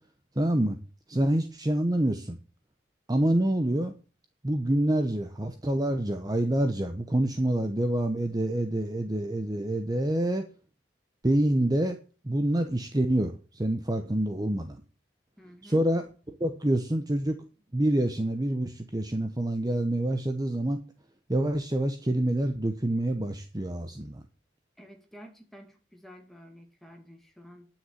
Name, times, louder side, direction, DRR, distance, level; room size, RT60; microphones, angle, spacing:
voice 1, 0.4-0.8 1.1-2.4 3.1-3.9 4.4-10.4 11.2-12.0 12.2-14.8 15.6-16.0 16.4-17.4 17.7-20.8 21.3-24.2, right 1 dB, 20° right, 7 dB, 0.8 m, -27 dB
voice 2, 15.4-15.9 24.8-27.7, equal, ahead, 3 dB, 2.3 m, -50 dB
10.0 x 6.4 x 8.2 m, 0.37 s
head